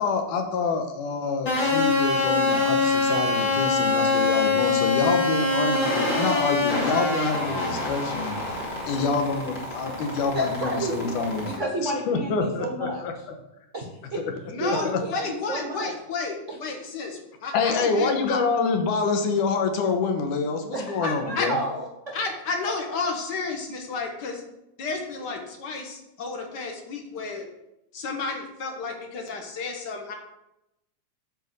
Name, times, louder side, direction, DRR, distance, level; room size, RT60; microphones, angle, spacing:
voice 1, 0.0-8.6 8.9-13.3 14.6-15.0 17.5-21.6, left 4 dB, 80° left, 5 dB, 2.6 m, -27 dB
sound 1, 1.5-11.6, left 3 dB, 35° left, 2.8 m, -25 dB
voice 2, 10.3-11.1 11.5-13.0 13.7-14.2 14.6-15.9 16.5-16.6 20.7-22.2, right 1 dB, 75° right, 0 dB, 0.6 m, -31 dB
voice 3, 14.5-16.4 16.6-18.4 21.4-21.5 22.1-24.4 24.8-27.4 27.9-30.1, left 4 dB, 50° left, 3 dB, 1.3 m, -32 dB
8.6 x 5.2 x 7.6 m, 0.88 s
omnidirectional pair, 3.7 m